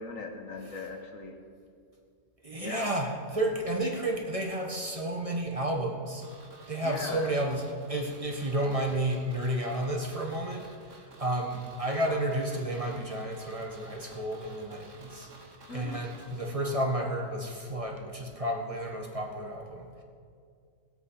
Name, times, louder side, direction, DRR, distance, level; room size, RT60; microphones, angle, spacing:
voice 1, 0.0-1.4 2.6-2.9 6.8-7.3 15.7-16.0, left 3 dB, 90° left, 3 dB, 1.8 m, -39 dB
voice 2, 2.4-6.2 6.7-7.6 7.9-15.3 15.7-20.0, right 1 dB, 25° right, 0 dB, 1.6 m, -31 dB
sound 1, 6.2-17.2 17.4-17.5, right 2 dB, 70° right, 2.0 m, -53 dB
19.5 x 8.0 x 5.8 m, 2.3 s
omnidirectional pair, 1.4 m